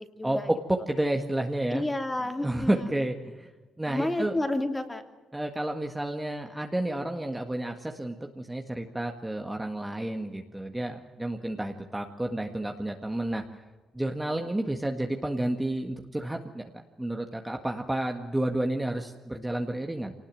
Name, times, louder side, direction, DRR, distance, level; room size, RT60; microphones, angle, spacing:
voice 1, 0.1-0.5 1.7-2.9 3.9-5.0, left 1 dB, 15° left, 6 dB, 2.8 m, -30 dB
voice 2, 0.7-1.9 2.4-3.5 3.8-4.4 5.3-13.4 13.9-16.7 17.0-20.1, right 1 dB, 10° right, 3 dB, 1.8 m, -31 dB
25.0 x 19.5 x 7.7 m, 1.2 s
cardioid pair, 90°, 0 cm